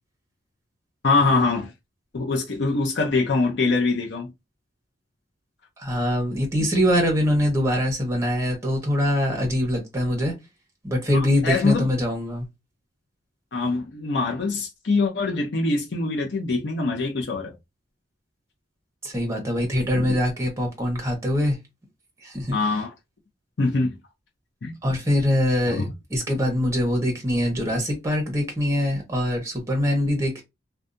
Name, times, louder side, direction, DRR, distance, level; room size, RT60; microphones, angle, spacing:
voice 1, 1.0-1.7 2.1-4.3 11.4-11.9 13.5-17.5 19.9-20.1 22.5-22.9 23.6-24.0 24.6-24.8 25.7-25.9, left 3 dB, 60° left, 0.5 m, -23 dB
voice 2, 5.8-10.3 10.8-12.5 19.0-21.6 22.2-22.8 24.8-30.4, equal, 15° right, 0.9 m, -23 dB
2.6 x 2.2 x 2.5 m
head